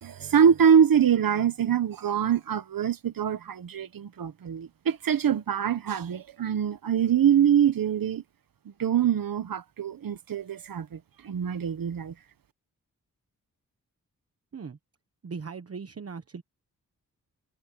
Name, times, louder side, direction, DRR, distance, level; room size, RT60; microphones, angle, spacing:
voice 1, 0.0-8.2 8.8-11.0 11.2-12.1, right 8 dB, 90° right, 1.2 m, -24 dB
voice 2, 15.2-16.4, right 5 dB, 45° right, 1.2 m, -39 dB
wide cardioid pair, 135°, 33 cm